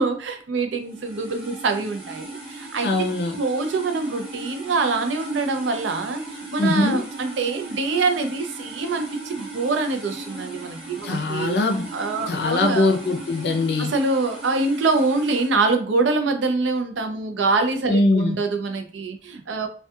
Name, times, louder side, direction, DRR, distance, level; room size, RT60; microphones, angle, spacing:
voice 1, 0.0-2.9 3.4-11.6 11.9-12.9 13.8-19.7, right 3 dB, 90° right, 0.5 m, -24 dB
sound 1, 0.8-15.5, right 2 dB, 30° right, 1.0 m, -38 dB
voice 2, 2.8-3.4 6.6-7.0 11.0-11.9 12.3-13.9 17.9-18.4, left 2 dB, 65° left, 0.5 m, -21 dB
2.6 x 2.3 x 2.3 m
head